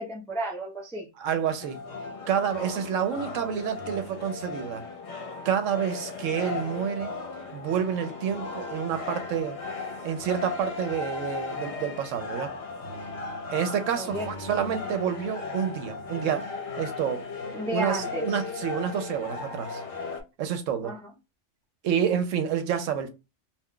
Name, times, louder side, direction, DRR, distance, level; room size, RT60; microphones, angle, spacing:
voice 1, 0.0-1.1 13.9-14.3 17.5-18.4 20.8-21.1, right 1 dB, 5° left, 0.4 m, -33 dB
voice 2, 1.2-1.8 2.3-4.8 5.4-7.1 7.5-9.6 10.0-12.5 13.5-16.5 16.8-17.2 17.7-19.8 20.4-20.9 21.8-23.1, right 8 dB, 80° right, 0.9 m, -28 dB
sound 1, 1.6-20.2, left 4 dB, 65° left, 0.9 m, -36 dB
2.4 x 2.2 x 3.6 m
omnidirectional pair, 1.3 m